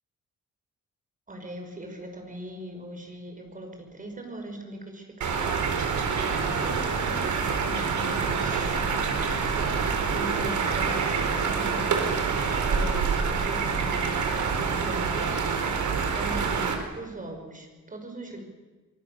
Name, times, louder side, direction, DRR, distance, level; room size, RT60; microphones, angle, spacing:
voice 1, 1.3-7.4 7.8-8.8 9.8-12.0 12.7-15.3 16.1-18.4, right 1 dB, 25° right, 4 dB, 5.7 m, -40 dB
sound 1, 5.2-16.7, right 5 dB, 75° right, 4.3 m, -26 dB
25.5 x 23.5 x 6.9 m, 1.3 s
wide cardioid pair, 135°, 30 cm